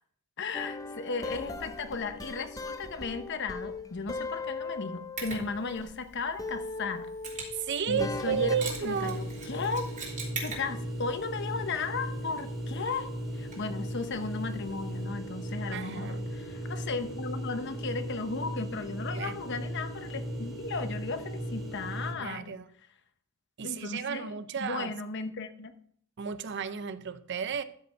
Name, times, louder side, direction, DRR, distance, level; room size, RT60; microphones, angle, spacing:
voice 1, 0.4-7.1 7.9-8.6 8.8-9.9 10.4-22.6 23.6-25.7, left 4 dB, 55° left, 0.8 m, -35 dB
sound 1, 0.5-6.0 6.4-8.7, left 3 dB, 15° left, 0.6 m, -39 dB
Mechanisms, 5.2-15.0, right 4 dB, 40° right, 2.6 m, -45 dB
voice 2, 7.5-9.2 15.7-16.3 19.1-19.4 22.2-22.7 23.6-24.9 26.2-27.6, right 7 dB, 55° right, 0.6 m, -33 dB
sound 2, 7.9-22.1, equal, ahead, 1.5 m, -37 dB
13.0 x 5.1 x 4.4 m
head